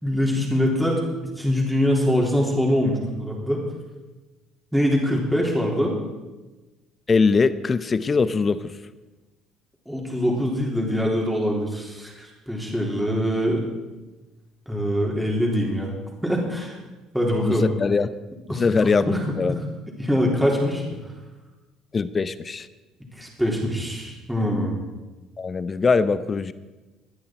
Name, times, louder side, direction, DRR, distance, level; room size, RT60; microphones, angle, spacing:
voice 1, 0.0-3.6 4.7-5.9 9.9-13.6 14.7-15.9 16.2-16.7 17.1-17.7 18.5-18.6 19.1-19.6 20.0-20.8 23.2-24.8, equal, 5° right, -2 dB, 3.7 m, -23 dB
voice 2, 7.1-8.7 17.4-18.1 18.5-19.6 21.9-22.7 25.4-26.5, left 4 dB, 35° left, 14 dB, 0.8 m, -22 dB
17.5 x 10.5 x 4.6 m, 1.2 s
hypercardioid pair, 65°, 0 cm